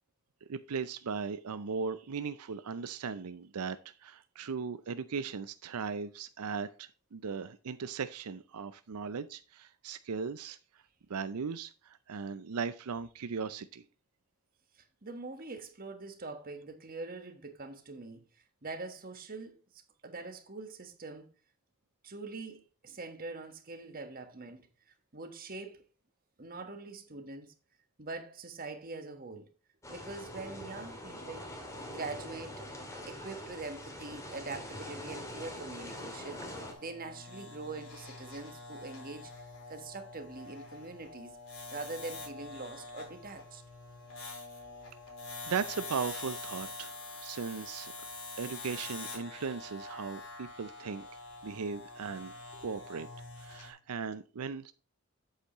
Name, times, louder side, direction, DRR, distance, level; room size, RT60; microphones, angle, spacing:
voice 1, 0.5-10.6 11.1-13.8 45.5-47.9 48.4-51.1 51.4-52.3 52.6-53.1 53.4-54.7, right 5 dB, 90° right, 0.5 m, -38 dB
voice 2, 14.8-21.3 22.0-25.8 26.4-27.5 28.0-29.5 29.9-31.5 31.9-32.6 33.1-41.4 41.7-43.6 52.6-52.7, right 3 dB, 40° right, 1.3 m, -44 dB
sound 1, 29.8-36.7, left 1 dB, 15° left, 2.2 m, -44 dB
sound 2, 34.5-53.7, left 3 dB, 65° left, 4.2 m, -46 dB
8.3 x 8.0 x 3.0 m
head